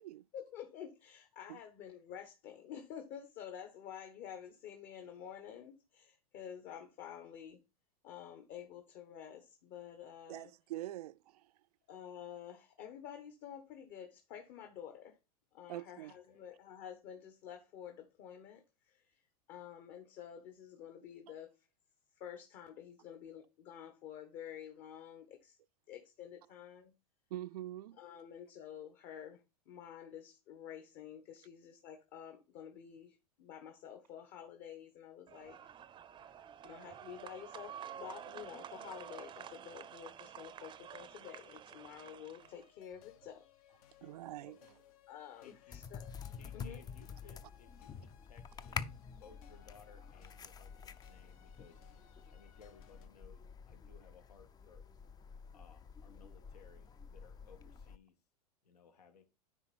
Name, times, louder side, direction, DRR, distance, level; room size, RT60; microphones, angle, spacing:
voice 1, 0.3-7.6 8.0-10.5 11.9-15.2 15.5-19.2 19.5-21.5 22.2-25.6 25.9-26.9 28.0-35.6 36.6-43.4 45.1-46.1 46.5-46.8, left 9 dB, 45° left, 1.3 m, -50 dB
voice 2, 10.3-11.6 15.7-16.2 27.3-28.0 44.0-44.6, right 14 dB, 75° right, 0.4 m, -44 dB
sound 1, 35.3-42.7, right 9 dB, 25° right, 0.6 m, -50 dB
sound 2, 42.4-53.1, left 9 dB, 65° left, 1.2 m, -64 dB
voice 3, 45.4-45.8 46.4-51.8 52.3-54.8 55.5-58.1 58.6-59.2, left 6 dB, 85° left, 1.7 m, -62 dB
sound 3, 45.7-58.0, left 6 dB, 20° left, 0.5 m, -48 dB
9.8 x 3.7 x 4.2 m
hypercardioid pair, 110°, 20 cm